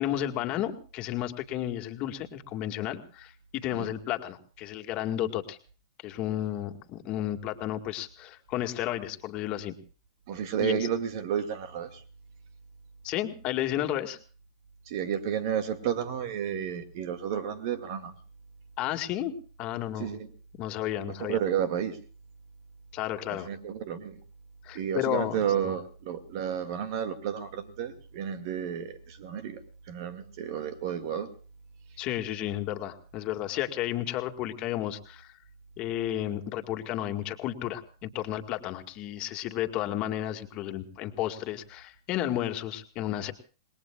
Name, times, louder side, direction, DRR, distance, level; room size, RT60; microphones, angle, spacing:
voice 1, 0.0-5.6 6.0-9.7 10.6-10.9 13.0-14.2 18.8-19.3 19.6-20.1 20.6-21.4 22.9-23.5 24.6-25.7 32.0-35.3 35.8-43.3, left 12 dB, 40° left, 2.0 m, -32 dB
voice 2, 10.3-12.0 14.9-18.1 20.0-20.3 21.2-22.0 23.3-24.2 24.7-31.3, right 8 dB, 55° right, 2.3 m, -32 dB
28.0 x 20.5 x 2.4 m
hypercardioid pair, 120°, 3 cm